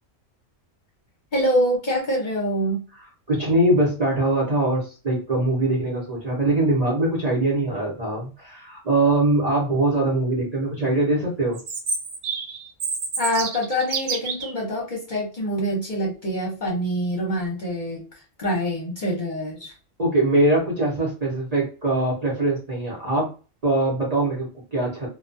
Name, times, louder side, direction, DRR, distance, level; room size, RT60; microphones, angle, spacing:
voice 1, 1.3-2.8 13.2-18.0 18.4-19.7, equal, 45° left, -3 dB, 0.8 m, -25 dB
voice 2, 2.9-11.6 20.0-23.3 23.6-25.1, right 2 dB, 35° right, -4 dB, 0.8 m, -22 dB
Chirp tweet, 11.5-14.5, right 4 dB, 75° right, 1.0 m, -28 dB
2.3 x 2.2 x 2.5 m, 0.34 s
omnidirectional pair, 1.3 m